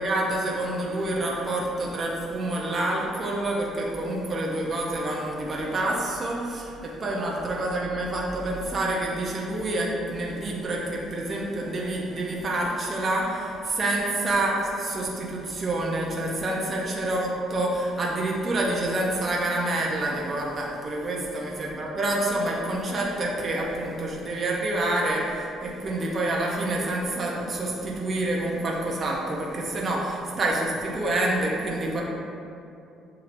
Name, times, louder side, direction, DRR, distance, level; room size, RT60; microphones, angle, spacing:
voice 1, 0.0-32.0, right 1 dB, 35° right, -3 dB, 0.6 m, -27 dB
7.3 x 2.8 x 2.5 m, 2.7 s
cardioid pair, 110°, 0 cm